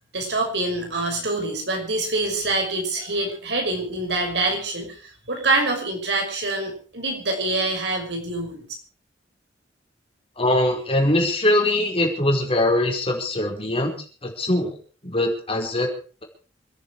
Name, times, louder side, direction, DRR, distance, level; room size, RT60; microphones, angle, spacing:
voice 1, 0.1-8.6, right 2 dB, 70° right, 2 dB, 6.1 m, -25 dB
voice 2, 10.4-13.9 14.2-14.8 15.0-15.9, left 1 dB, 35° left, 2 dB, 4.8 m, -22 dB
27.0 x 10.5 x 4.8 m, 0.38 s
head